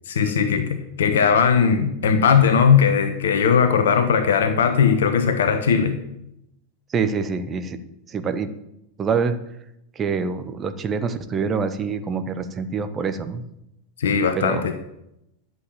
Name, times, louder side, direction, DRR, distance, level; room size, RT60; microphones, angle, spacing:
voice 1, 0.1-6.0 14.0-14.7, left 6 dB, 60° left, 9 dB, 1.1 m, -18 dB
voice 2, 6.9-7.8 8.1-8.5 9.0-9.4 9.9-13.4 14.3-14.7, right 5 dB, 25° right, 9 dB, 1.2 m, -25 dB
11.5 x 7.8 x 7.6 m, 0.83 s
figure-of-eight pair, 90°, 0 cm